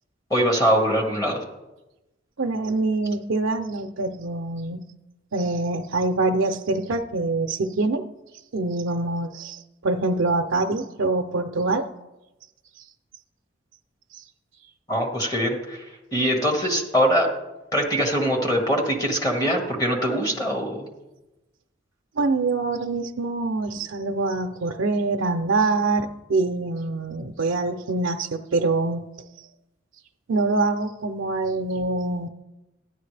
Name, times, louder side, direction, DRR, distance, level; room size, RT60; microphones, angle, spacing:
voice 1, 0.3-1.4 14.9-17.3 17.7-20.9, equal, 20° left, 1 dB, 1.6 m, -23 dB
voice 2, 2.4-4.8 5.3-8.0 8.5-11.9 12.8-12.9 22.2-29.0 30.3-32.3, right 3 dB, 90° right, 4 dB, 0.5 m, -25 dB
12.5 x 10.5 x 3.3 m, 1.0 s
head